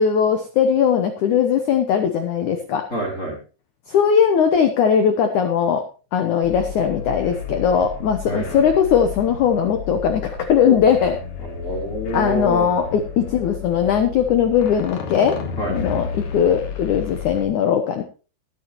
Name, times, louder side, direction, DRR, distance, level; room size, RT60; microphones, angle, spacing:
voice 1, 0.0-2.8 3.9-5.8 6.1-11.2 12.1-15.4 15.7-18.0, left 7 dB, 75° left, 7 dB, 1.7 m, -19 dB
voice 2, 2.9-3.4 8.2-8.6 11.4-12.7 15.6-15.7, right 1 dB, 20° left, -1 dB, 3.7 m, -26 dB
sound 1, 6.4-17.5, left 5 dB, 55° left, 2.5 m, -32 dB
20.5 x 9.2 x 3.0 m, 0.35 s
omnidirectional pair, 5.0 m